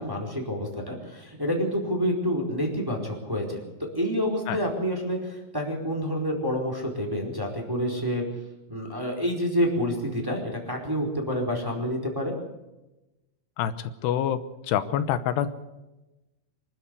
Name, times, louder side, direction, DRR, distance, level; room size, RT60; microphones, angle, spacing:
voice 1, 0.0-3.6 3.9-8.2 8.7-12.3, equal, 5° right, 1 dB, 4.0 m, -28 dB
voice 2, 14.0-14.4 14.7-15.5, left 10 dB, 85° left, 12 dB, 3.1 m, -25 dB
25.5 x 12.5 x 8.3 m, 1.0 s
omnidirectional pair, 4.7 m